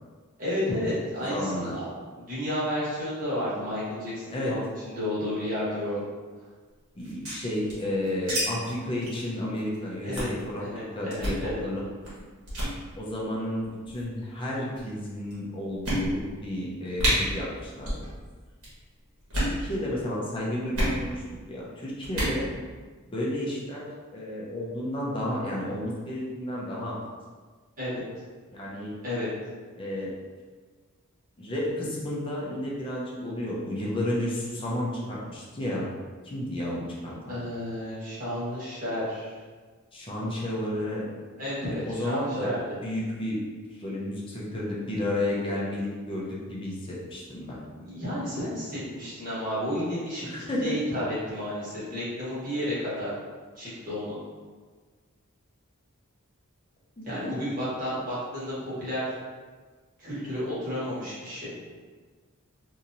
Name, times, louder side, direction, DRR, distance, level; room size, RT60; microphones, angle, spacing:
voice 1, 0.4-1.8 2.2-6.0 10.0-10.3 10.6-11.6 27.8-28.0 29.0-29.3 37.3-39.3 41.4-42.6 47.7-53.1 53.6-54.2 57.0-59.0 60.0-61.5, left 1 dB, 40° right, -10 dB, 1.3 m, -32 dB
voice 2, 1.3-1.7 4.3-4.5 6.9-10.6 10.9-11.8 13.0-18.1 19.3-21.2 21.5-22.5 23.1-23.8 24.1-27.0 28.5-29.0 29.8-30.1 31.4-35.9 36.2-37.1 39.9-41.1 41.8-42.5 42.8-43.4 43.7-47.6 50.2-50.8 57.0-57.4, left 1 dB, 25° left, -5 dB, 0.6 m, -32 dB
sound 1, 7.0-8.4 8.7-8.8 9.0-9.2 9.6-9.8 10.2-10.4 11.1-11.4 12.0-12.2 12.5-12.7 13.6-14.1 14.8-14.9 15.3-15.4 15.8-16.4 16.7-16.8 17.0-17.1 17.8-18.1 18.3-18.7 19.2-19.6 20.7-21.0 22.0-22.4, right 1 dB, 70° right, 1.3 m, -28 dB
3.0 x 2.7 x 2.6 m, 1.5 s
head